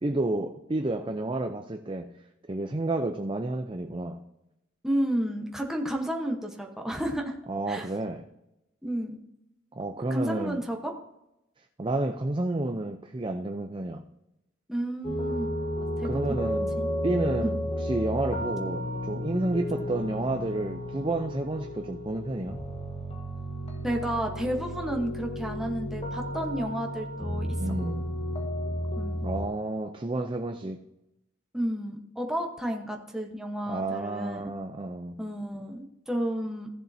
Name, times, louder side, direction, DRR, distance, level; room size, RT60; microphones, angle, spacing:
voice 1, 0.0-2.1 2.5-4.2 7.5-8.2 9.8-10.6 11.8-14.0 16.0-16.7 17.0-22.6 27.6-28.1 29.2-30.8 33.7-35.2, right 2 dB, 25° right, 5 dB, 0.6 m, -30 dB
voice 2, 4.8-7.3 7.7-7.9 8.8-9.2 10.1-10.9 14.7-15.5 16.0-16.9 17.4-17.5 23.8-27.5 28.9-29.2 31.5-34.5 35.2-36.7, right 1 dB, ahead, 0 dB, 1.1 m, -31 dB
sound 1, 15.0-29.5, equal, 30° left, 1.4 m, -33 dB
15.5 x 7.3 x 2.7 m, 0.88 s
head